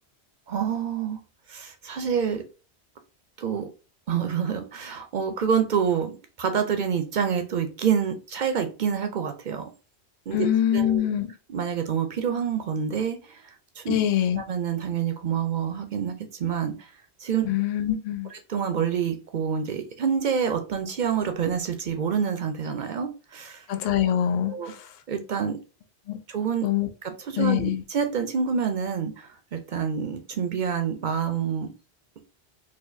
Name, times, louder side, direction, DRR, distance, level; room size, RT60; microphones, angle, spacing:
voice 1, 0.5-1.2 1.5-2.4 3.4-3.7 4.1-6.1 6.4-9.7 10.3-10.5 10.7-11.0 11.5-14.0 14.4-16.9 17.2-17.5 18.3-23.7 24.5-24.7 25.1-25.6 26.3-26.7 27.3-31.7, right 7 dB, 55° right, 0.5 m, -27 dB
voice 2, 10.3-11.3 13.9-14.4 17.4-18.3 23.7-24.9 26.1-26.2 26.6-26.9 27.4-27.8, left 11 dB, 55° left, 0.4 m, -24 dB
4.1 x 2.5 x 2.6 m
omnidirectional pair, 1.1 m